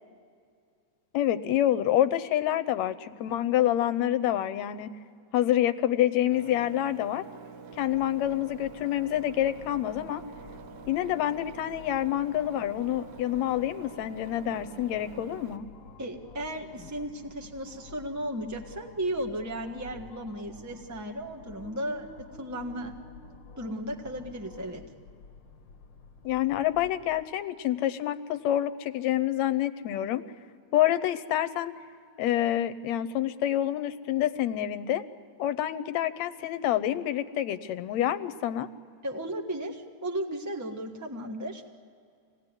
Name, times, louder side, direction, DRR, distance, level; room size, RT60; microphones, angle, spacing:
voice 1, 1.1-4.9 5.3-7.2 7.8-10.2 10.9-15.7 26.2-30.2 30.7-31.7 32.2-35.0 35.4-38.7, left 12 dB, 75° left, 11 dB, 1.9 m, -27 dB
Engine, 6.3-15.6, right 5 dB, 75° right, 2.2 m, -47 dB
sound 1, 7.7-27.2, left 3 dB, 45° left, 1.8 m, -51 dB
voice 2, 16.0-22.9 23.6-24.9 39.0-41.6, right 1 dB, 25° right, 3 dB, 0.4 m, -35 dB
25.5 x 18.5 x 9.8 m, 2.4 s
omnidirectional pair, 3.3 m